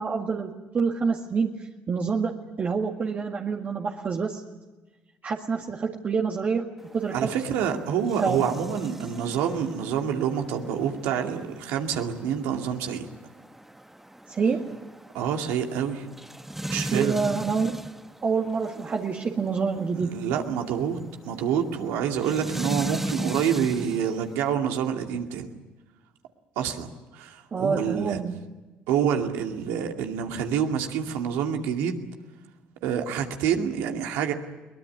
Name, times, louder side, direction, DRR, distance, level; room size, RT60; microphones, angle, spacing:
voice 1, 0.0-4.4 5.2-7.3 8.2-8.5 14.3-14.9 16.9-17.8 18.2-20.3 27.5-28.4, right 5 dB, 40° right, 1 dB, 1.9 m, -27 dB
sound 1, 6.8-24.5, right 1 dB, 5° right, 1.2 m, -39 dB
voice 2, 7.1-13.1 15.1-16.0 16.7-17.2 20.0-25.5 26.6-28.2 28.9-32.0 32.8-34.3, right 8 dB, 80° right, 3 dB, 2.4 m, -27 dB
22.5 x 19.5 x 9.6 m, 1.1 s
supercardioid pair, 70°, 4 cm